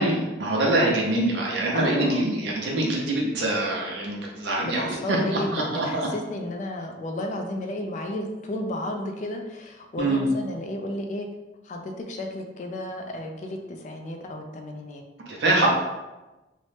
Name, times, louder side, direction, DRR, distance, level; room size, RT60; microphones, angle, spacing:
voice 1, 0.0-5.2 5.5-6.1 10.0-10.3 15.3-15.7, right 2 dB, 65° right, -2 dB, 0.5 m, -24 dB
voice 2, 1.7-2.2 4.6-11.3 11.6-15.0 15.6-15.7, left 1 dB, 40° left, 3 dB, 0.3 m, -33 dB
2.7 x 2.1 x 3.2 m, 1.1 s
head